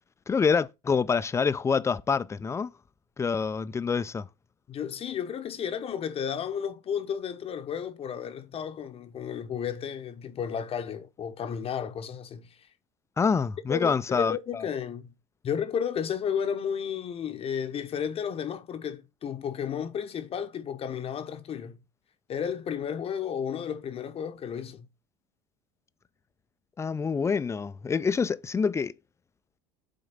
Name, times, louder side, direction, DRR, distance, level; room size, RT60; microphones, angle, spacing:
voice 1, 0.3-2.7 3.2-4.3 13.2-14.6 26.8-28.9, left 5 dB, 15° left, 0.5 m, -26 dB
voice 2, 4.7-12.6 13.7-15.1 15.4-21.8 22.3-24.9, left 8 dB, 35° left, 0.8 m, -33 dB
8.8 x 3.7 x 5.5 m
hypercardioid pair, 80°, 17 cm